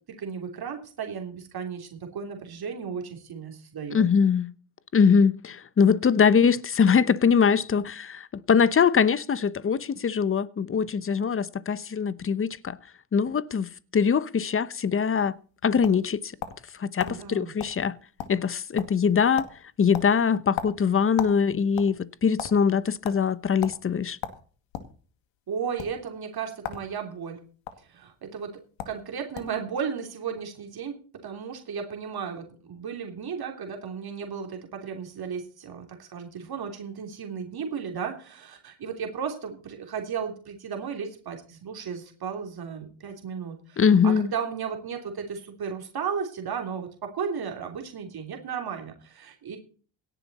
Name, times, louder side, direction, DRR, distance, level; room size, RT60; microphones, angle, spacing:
voice 1, 0.2-4.0 17.0-17.5 25.5-27.4 27.8-28.5 28.8-31.0 31.2-49.6, right 6 dB, 50° right, 3.3 m, -34 dB
voice 2, 3.9-4.5 4.9-12.8 13.1-15.4 15.6-16.3 16.8-17.9 18.3-19.5 19.8-24.2 43.8-44.3, left 6 dB, 25° left, 0.9 m, -22 dB
sound 1, 15.3-16.7 17.0-17.2 17.6-17.8 18.0-18.5 18.8-19.1 19.4-19.6 19.9-21.4 21.7-22.5 23.0-23.2 23.6-23.8 24.2-24.9 25.7-25.9 26.6-26.9 27.1-27.7 28.5-28.6 28.8-29.0 29.3-29.6, left 9 dB, 65° left, 2.3 m, -35 dB
17.5 x 11.0 x 4.2 m
cardioid pair, 95°, 49 cm